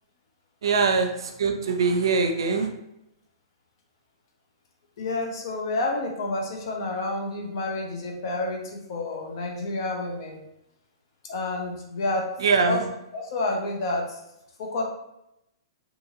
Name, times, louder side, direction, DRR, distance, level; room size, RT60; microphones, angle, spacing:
voice 1, 0.6-1.1 1.4-2.7 12.4-12.8, right 4 dB, 80° right, 6 dB, 0.5 m, -22 dB
voice 2, 5.0-10.4 11.3-12.3 12.6-12.8 13.1-14.1 14.6-14.8, left 2 dB, 60° left, 1 dB, 0.8 m, -29 dB
2.8 x 2.6 x 2.7 m, 0.83 s
hypercardioid pair, 130°, 3 cm